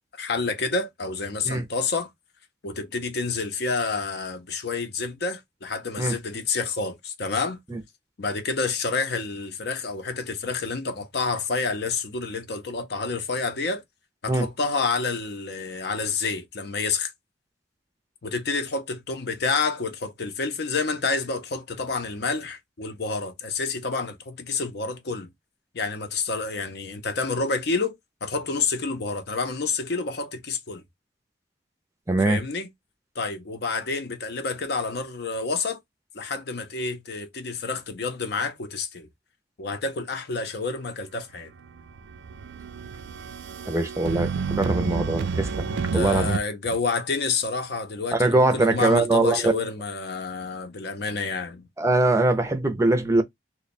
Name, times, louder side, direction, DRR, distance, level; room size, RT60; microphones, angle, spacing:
voice 1, 0.2-2.1 2.6-7.6 8.2-13.8 14.2-17.1 18.2-25.3 25.7-27.9 28.2-30.8 32.2-32.7 33.2-35.8 36.1-39.1 39.6-41.5 45.7-51.7, left 4 dB, 60° left, 0.6 m, -29 dB
voice 2, 32.1-32.4 43.7-45.7 45.9-46.4 48.1-49.6 51.8-53.2, right 2 dB, 15° right, 0.5 m, -22 dB
sound 1, 41.6-46.4, right 5 dB, 80° right, 0.4 m, -30 dB
3.1 x 2.2 x 4.1 m
head